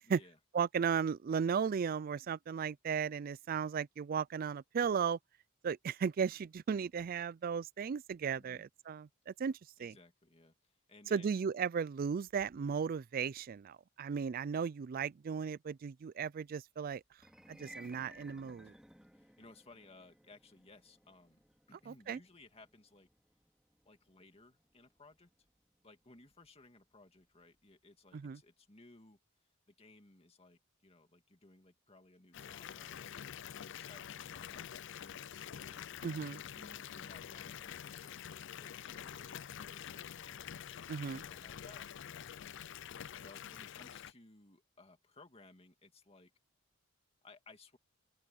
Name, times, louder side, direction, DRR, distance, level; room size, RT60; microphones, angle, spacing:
voice 1, 0.0-0.4 8.4-8.7 9.8-11.5 18.6-18.8 19.1-21.4 21.7-23.1 23.8-25.3 25.8-29.2 29.7-36.0 36.4-40.5 41.2-41.9 43.2-46.3 47.2-47.8, left 2 dB, 30° left, 2.2 m, -60 dB
voice 2, 0.5-5.2 5.6-9.9 11.1-17.0 17.5-18.7 21.9-22.2 28.1-28.4 36.0-36.4 40.9-41.2, right 6 dB, 45° right, 0.3 m, -35 dB
sound 1, 17.1-27.4, equal, 5° right, 3.1 m, -60 dB
Water tap faucet / Bathtub (filling or washing) / Fill (with liquid), 32.3-44.1, left 9 dB, 60° left, 0.5 m, -47 dB
open air
head